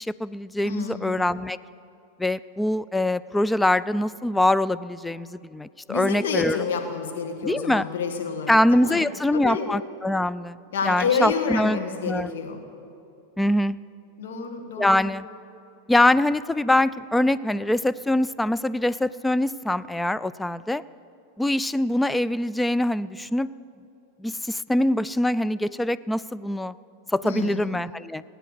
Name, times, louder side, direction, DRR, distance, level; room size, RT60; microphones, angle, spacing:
voice 1, 0.0-1.6 2.2-6.6 7.4-7.9 8.5-11.8 12.0-12.3 13.4-13.8 14.8-15.3 15.9-20.8 21.4-23.5 24.2-26.7 27.1-28.2, left 1 dB, 5° left, 16 dB, 0.3 m, -23 dB
voice 2, 0.6-1.1 5.9-9.0 9.3-9.7 10.7-12.6 14.2-15.0 27.2-27.7, left 5 dB, 75° left, 4 dB, 1.8 m, -29 dB
19.0 x 9.1 x 5.0 m, 2.6 s
hypercardioid pair, 110°, 0 cm